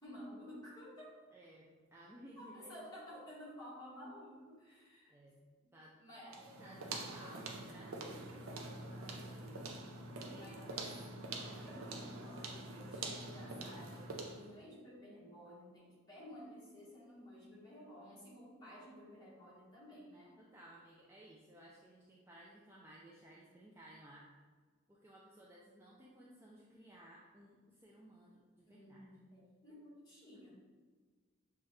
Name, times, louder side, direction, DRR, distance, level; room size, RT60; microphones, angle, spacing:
voice 1, 0.0-1.2 2.4-5.2 5.6-5.7 6.0-6.5 9.0-9.7 10.1-20.4 28.6-30.6, equal, 20° left, -8 dB, 1.3 m, -54 dB
voice 2, 1.3-2.7 5.1-5.5 5.7-5.9 6.4-9.7 10.2-10.9 20.4-24.3 24.9-29.1, right 1 dB, 10° right, -5 dB, 0.3 m, -58 dB
sound 1, 6.3-14.5, right 2 dB, 90° right, 0.6 m, -45 dB
6.0 x 2.3 x 3.1 m, 1.5 s
head